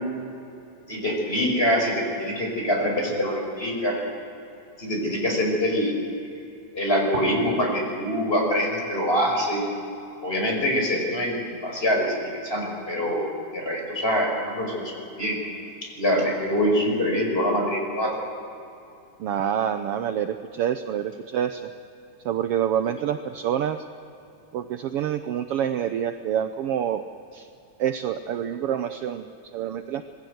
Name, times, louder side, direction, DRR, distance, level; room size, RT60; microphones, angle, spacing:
voice 1, 0.9-4.0 4.8-6.0 6.7-9.6 10.2-11.4 11.6-13.3 13.5-15.4 16.0-18.2, equal, 15° left, 1 dB, 5.6 m, -24 dB
voice 2, 19.2-21.7 22.2-23.9 24.5-27.0 27.3-27.5 27.8-30.0, right 9 dB, 75° right, 8 dB, 1.3 m, -27 dB
26.5 x 20.5 x 8.0 m, 2.8 s
omnidirectional pair, 3.6 m